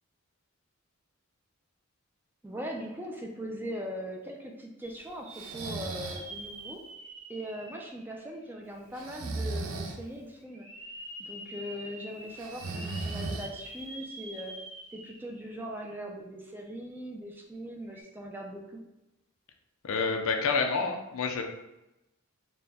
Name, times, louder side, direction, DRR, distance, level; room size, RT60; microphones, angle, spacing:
voice 1, 2.4-6.8 7.3-10.7 11.2-14.5 14.9-18.8, equal, 10° right, 1 dB, 0.4 m, -40 dB
sound 1, 4.8-8.8 9.3-9.4 10.5-15.4 15.8-15.9 17.8-18.0, right 1 dB, 35° right, 0.8 m, -46 dB
Breathing, 5.3-6.3 9.0-10.0 12.4-13.8, right 3 dB, 70° right, 0.5 m, -36 dB
voice 2, 19.8-21.4, left 4 dB, 65° left, 4 dB, 0.5 m, -28 dB
4.2 x 2.1 x 3.4 m, 0.94 s
head